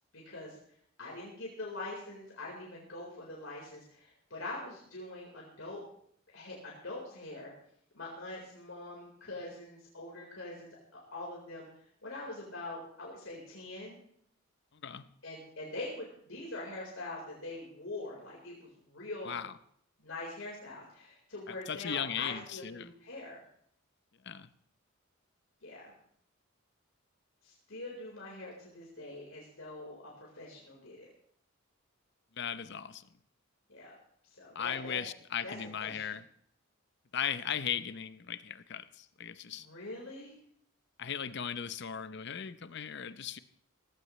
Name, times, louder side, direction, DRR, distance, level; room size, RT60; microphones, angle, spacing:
voice 1, 0.1-0.6 1.0-5.8 6.3-7.5 7.9-11.7 12.0-14.0 15.2-19.4 20.0-23.4 25.6-25.9 27.4-31.1 33.7-34.0 34.4-35.0 35.4-36.0 39.5-40.3, left 2 dB, 75° left, -3 dB, 4.2 m, -43 dB
voice 2, 14.7-15.1 19.2-19.6 21.5-22.9 24.2-24.5 32.3-33.0 34.5-36.2 37.1-39.7 41.0-43.4, left 8 dB, 55° left, 13 dB, 0.7 m, -37 dB
18.0 x 16.0 x 3.2 m, 0.66 s
head